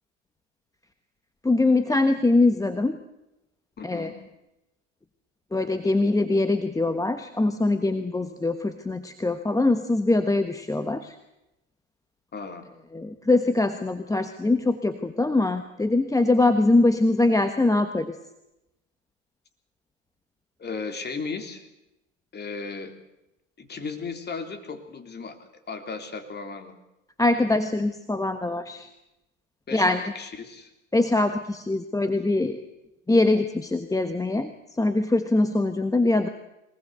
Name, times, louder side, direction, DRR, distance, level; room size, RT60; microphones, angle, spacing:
voice 1, 1.4-3.0 3.8-4.1 5.5-11.1 12.9-18.1 27.2-28.9 29.7-30.0 30.9-32.6 33.1-34.5 34.8-36.3, left 2 dB, 10° left, 9 dB, 1.3 m, -23 dB
voice 2, 3.8-4.2 12.3-12.7 20.6-21.7 22.3-22.9 23.6-26.7 29.7-30.7, left 4 dB, 25° left, 7 dB, 3.6 m, -35 dB
22.5 x 20.0 x 8.1 m, 0.91 s
hypercardioid pair, 100°, 40 cm